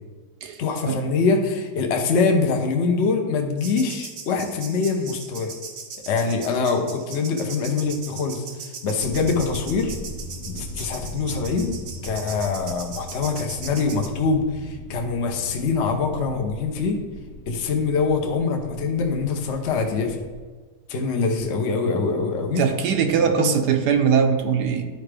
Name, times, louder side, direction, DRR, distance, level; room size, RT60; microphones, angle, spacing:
voice 1, 0.6-5.5 6.1-9.9 10.5-11.7 12.0-17.0 17.5-20.2 20.9-22.6 23.3-23.5, left 4 dB, 50° left, 3 dB, 0.9 m, -24 dB
sound 1, 3.6-14.1, right 5 dB, 55° right, 0.9 m, -39 dB
sound 2, 9.0-20.4, equal, 75° left, 1.4 m, -39 dB
voice 2, 22.6-24.9, right 7 dB, 75° right, 6 dB, 1.1 m, -21 dB
10.5 x 4.7 x 3.4 m, 1.4 s
omnidirectional pair, 1.9 m